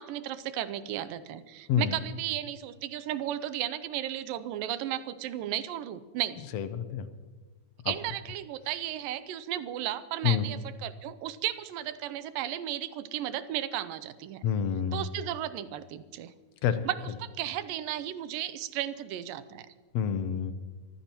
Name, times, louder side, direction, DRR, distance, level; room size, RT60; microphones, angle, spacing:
voice 1, 0.0-6.4 7.9-14.4 14.9-16.3 16.9-19.7, right 12 dB, 90° right, 13 dB, 2.4 m, -34 dB
voice 2, 6.5-7.1 7.8-7.9 10.2-10.4 14.4-15.0 16.6-16.9 19.9-20.5, left 8 dB, 75° left, 11 dB, 1.5 m, -28 dB
24.5 x 15.0 x 3.0 m, 1.4 s
omnidirectional pair, 4.0 m